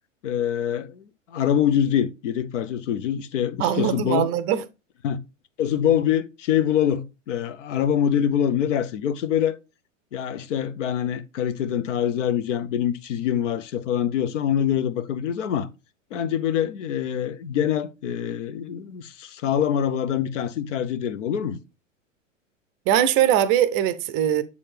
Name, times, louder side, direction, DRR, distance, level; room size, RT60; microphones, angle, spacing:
voice 1, 0.2-4.3 5.0-5.2 5.6-9.6 10.1-15.7 16.1-21.6, left 9 dB, 70° left, 0.7 m, -25 dB
voice 2, 3.6-4.6 22.9-24.4, right 10 dB, 30° right, 0.5 m, -21 dB
7.0 x 4.2 x 3.3 m
hypercardioid pair, 105°, 39 cm